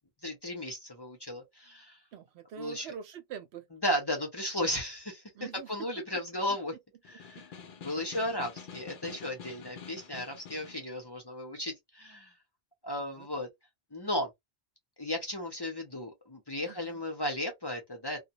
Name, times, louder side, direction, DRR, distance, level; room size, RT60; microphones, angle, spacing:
voice 1, 0.2-2.0 2.6-2.9 3.8-5.2 5.7-6.7 7.1-7.5 7.8-12.3 12.8-13.5 13.9-14.3 15.0-18.2, left 1 dB, 25° left, 0.7 m, -35 dB
voice 2, 2.1-3.6 5.3-5.7 7.3-7.4 8.0-8.2 13.2-13.3 16.7-17.0, right 8 dB, 85° right, 0.9 m, -44 dB
Snare drum, 7.0-10.9, left 7 dB, 60° left, 0.7 m, -47 dB
2.2 x 2.2 x 2.7 m
omnidirectional pair, 1.1 m